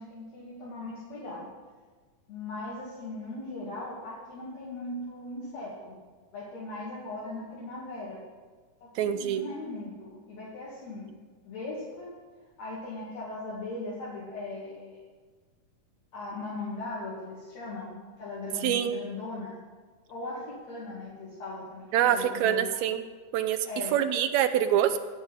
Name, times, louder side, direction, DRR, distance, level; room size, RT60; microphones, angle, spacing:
voice 1, 0.0-1.5 2.3-5.9 6.3-8.2 8.8-11.1 11.4-12.1 12.6-15.0 16.1-19.6 20.1-22.8 23.6-23.9, left 2 dB, 60° left, -7 dB, 3.4 m, -39 dB
voice 2, 8.9-9.4 18.6-19.0 21.9-23.0 23.3-23.6 23.9-25.0, right 10 dB, 75° right, 10 dB, 1.7 m, -25 dB
16.0 x 5.4 x 8.1 m, 1.4 s
omnidirectional pair, 3.6 m